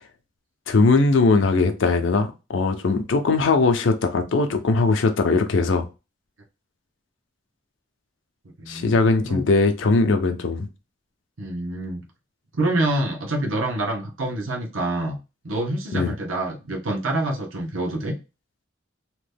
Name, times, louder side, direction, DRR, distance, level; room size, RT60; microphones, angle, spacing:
voice 1, 0.7-5.9 8.7-10.7 15.9-16.1, left 3 dB, 70° left, 0.5 m, -20 dB
voice 2, 8.6-8.9 9.2-9.5 11.4-12.0 12.5-15.2 15.4-18.2, right 1 dB, 90° right, 0.8 m, -26 dB
2.9 x 2.1 x 3.3 m
head